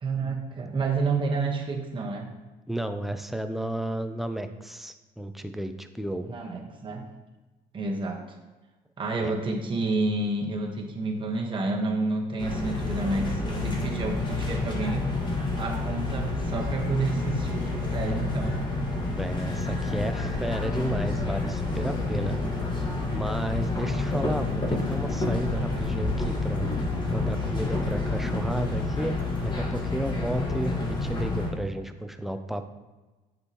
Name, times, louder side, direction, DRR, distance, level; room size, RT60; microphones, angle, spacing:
voice 1, 0.0-2.4 6.2-7.1 7.7-8.4 9.0-15.1 15.6-18.6 19.5-19.8 20.5-20.6, right 3 dB, 30° right, 0 dB, 1.3 m, -29 dB
voice 2, 2.7-6.3 9.2-9.3 19.2-22.4 23.1-26.7 27.1-29.1 29.4-32.7, right 1 dB, ahead, 7 dB, 0.5 m, -32 dB
sound 1, 12.4-31.5, left 3 dB, 25° left, 1.6 m, -29 dB
7.8 x 5.4 x 3.0 m, 1.2 s
cardioid pair, 110°, 17 cm